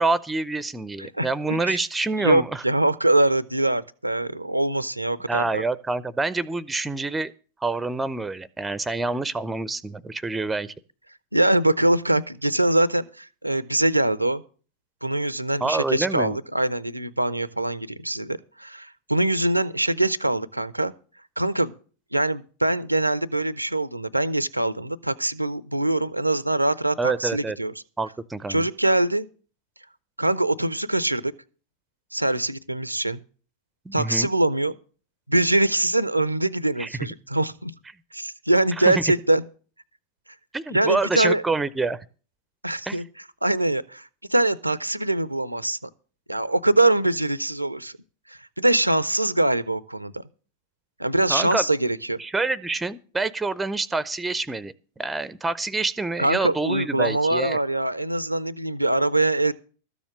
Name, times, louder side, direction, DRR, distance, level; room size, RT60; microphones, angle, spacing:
voice 1, 0.0-2.6 5.3-7.3 7.6-10.7 15.6-16.4 27.0-27.6 28.0-28.7 33.9-34.3 36.8-36.9 38.9-39.0 40.5-42.0 42.9-43.0 51.3-51.6 52.2-57.6, right 3 dB, 10° right, 0.6 m, -27 dB
voice 2, 1.0-1.8 2.2-5.6 11.3-14.4 15.0-20.9 21.4-21.7 22.1-27.7 28.5-29.3 30.2-31.3 32.1-33.2 33.9-34.8 35.3-37.7 38.1-39.4 40.7-41.4 42.6-43.0 43.4-45.9 46.3-47.9 48.3-50.2 51.0-52.2 56.2-59.5, right 1 dB, 85° right, 0.5 m, -23 dB
13.5 x 7.1 x 6.2 m
figure-of-eight pair, 90°, 0 cm